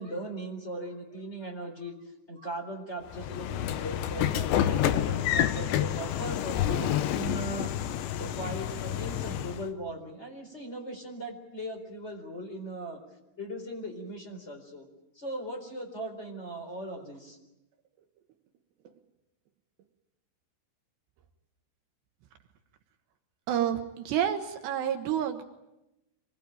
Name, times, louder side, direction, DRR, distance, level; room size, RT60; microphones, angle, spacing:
voice 1, 0.0-1.9 2.3-13.0 13.4-14.9 15.1-17.4, right 1 dB, 15° left, 5 dB, 3.7 m, -39 dB
Train / Sliding door, 3.1-9.7, left 11 dB, 75° left, 3.0 m, -29 dB
voice 2, 23.5-25.4, right 10 dB, 70° right, 6 dB, 2.9 m, -29 dB
25.5 x 19.5 x 9.2 m, 0.95 s
omnidirectional pair, 5.8 m